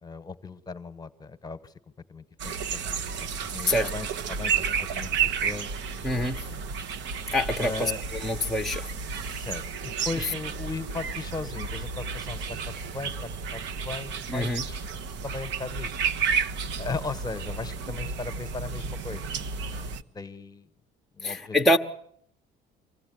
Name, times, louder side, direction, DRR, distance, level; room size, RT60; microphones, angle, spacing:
voice 1, 0.0-1.7 2.1-5.7 6.0-6.7 7.6-8.0 9.3-14.9 15.2-15.9 16.8-19.4 19.7-20.7 21.1-21.6, left 3 dB, 20° left, 1.3 m, -38 dB
sound 1, 2.4-20.0, right 6 dB, 70° right, 1.3 m, -32 dB
voice 2, 6.0-6.4 7.3-7.9 8.2-8.9 14.3-14.6 21.2-21.8, left 1 dB, ahead, 0.9 m, -25 dB
25.0 x 16.0 x 9.3 m
cardioid pair, 140°, 19 cm